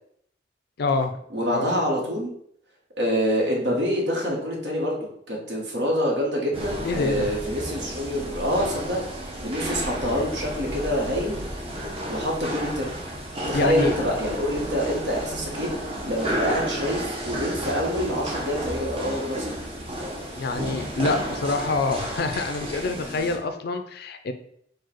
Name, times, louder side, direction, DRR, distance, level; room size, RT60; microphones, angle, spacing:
voice 1, 0.8-1.2 1.5-1.7 6.8-7.3 13.5-13.9 20.3-24.3, left 3 dB, 60° left, 8 dB, 0.4 m, -26 dB
voice 2, 1.3-2.3 3.0-9.0 9.4-11.4 12.1-12.9 13.5-15.7 16.0-19.5, equal, 65° right, -2 dB, 1.4 m, -26 dB
sound 1, 6.5-23.4, right 1 dB, 30° right, 0.9 m, -32 dB
4.7 x 2.3 x 4.4 m, 0.68 s
head